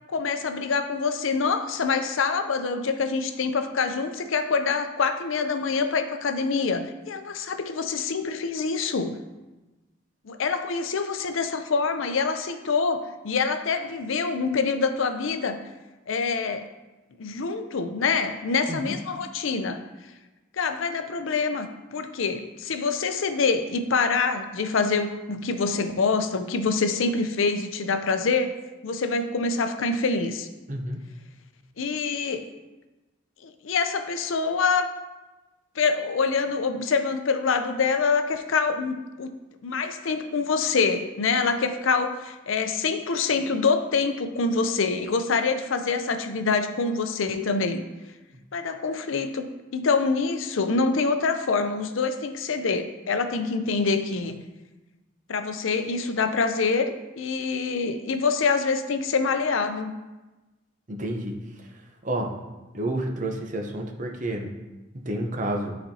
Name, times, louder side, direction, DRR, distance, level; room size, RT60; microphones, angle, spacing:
voice 1, 0.1-9.2 10.2-15.6 16.1-16.7 17.2-19.8 20.5-28.6 28.8-30.5 31.8-32.5 33.4-34.9 35.8-39.3 39.6-47.8 48.5-49.5 49.7-54.4 55.3-59.9, left 4 dB, 75° left, 8 dB, 0.6 m, -25 dB
voice 2, 30.7-31.1 60.9-61.4 62.0-62.3 62.7-64.5 64.9-65.8, right 1 dB, 40° right, 3 dB, 0.8 m, -30 dB
11.5 x 4.2 x 2.8 m, 1.1 s
head